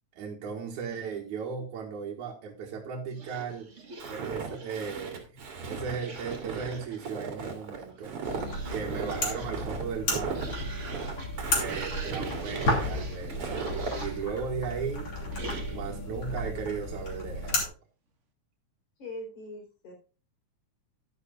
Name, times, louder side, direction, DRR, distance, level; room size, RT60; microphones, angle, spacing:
voice 1, 0.1-3.7 4.1-8.1 8.7-10.5 11.5-13.7 13.9-15.1 15.7-17.7, right 6 dB, 85° right, 0 dB, 3.0 m, -36 dB
sound 1, 3.1-5.0 5.9-7.1 7.8-14.3 15.3-16.0, right 4 dB, 35° right, 1.2 m, -43 dB
Walk footsteps, 4.0-14.0, right 5 dB, 50° right, 3.0 m, -37 dB
sound 2, 8.2-17.7, left 1 dB, 40° left, 3.5 m, -33 dB
voice 2, 19.0-19.9, left 1 dB, 75° left, 1 dB, 5.0 m, -41 dB
11.5 x 11.0 x 2.3 m, 0.35 s
omnidirectional pair, 3.3 m